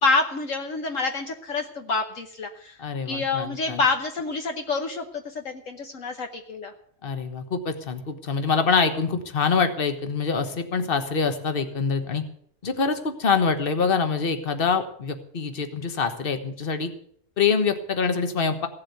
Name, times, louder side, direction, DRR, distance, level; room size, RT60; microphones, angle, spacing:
voice 1, 0.0-2.8 3.1-6.7, left 3 dB, 65° left, 5 dB, 1.4 m, -27 dB
voice 2, 2.8-3.8 7.0-12.2 12.6-16.9 17.4-18.7, left 5 dB, 40° left, 8 dB, 1.5 m, -25 dB
16.0 x 7.6 x 8.0 m, 0.63 s
omnidirectional pair, 1.5 m